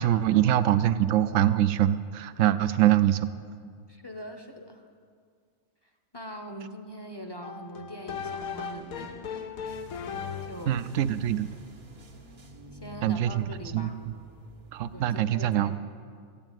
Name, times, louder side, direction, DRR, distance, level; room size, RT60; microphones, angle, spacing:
voice 1, 0.0-3.3 10.7-11.5 13.0-13.4 13.7-14.1 14.7-15.8, right 12 dB, 70° right, 14 dB, 0.9 m, -24 dB
voice 2, 3.9-4.9 6.1-9.5 10.5-10.8 12.7-14.0 14.9-15.8, equal, 20° left, 4 dB, 0.7 m, -42 dB
sound 1, 7.4-10.8, left 6 dB, 80° left, 1.2 m, -37 dB
sound 2, 9.6-15.0, left 1 dB, 85° right, 2.1 m, -49 dB
14.0 x 8.9 x 9.1 m, 2.1 s
omnidirectional pair, 1.5 m